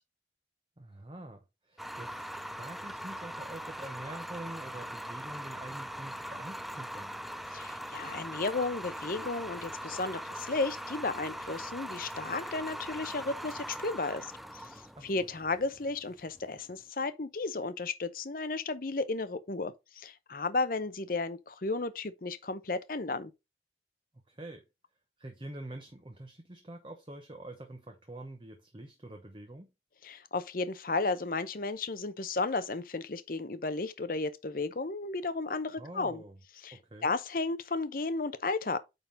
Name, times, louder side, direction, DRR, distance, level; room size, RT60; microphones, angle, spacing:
voice 1, 0.8-7.1 15.0-15.3 24.3-24.6 25.2-29.7 35.8-36.4 36.7-37.1, right 1 dB, 25° right, 0.9 m, -46 dB
sound 1, 1.8-16.7, equal, ahead, 0.3 m, -41 dB
voice 2, 7.5-14.3 14.5-23.3 30.0-36.2 36.6-38.8, left 3 dB, 50° left, 0.7 m, -34 dB
9.0 x 3.8 x 3.9 m
head